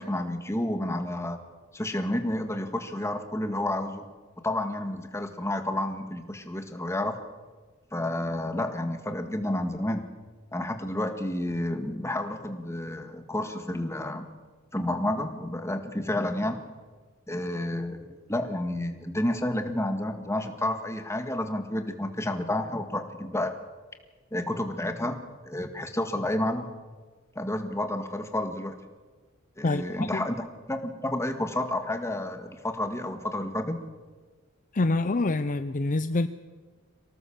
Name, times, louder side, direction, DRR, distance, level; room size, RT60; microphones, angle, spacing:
voice 1, 0.0-1.4 1.7-4.1 4.4-7.2 7.9-10.0 10.5-14.3 14.7-16.6 17.3-23.5 24.3-25.2 25.4-26.7 27.4-28.7 29.6-33.8, left 1 dB, 15° left, 6 dB, 1.8 m, -30 dB
voice 2, 29.6-30.3 34.7-36.3, left 2 dB, 40° left, 11 dB, 0.6 m, -26 dB
24.5 x 18.0 x 7.3 m, 1.4 s
head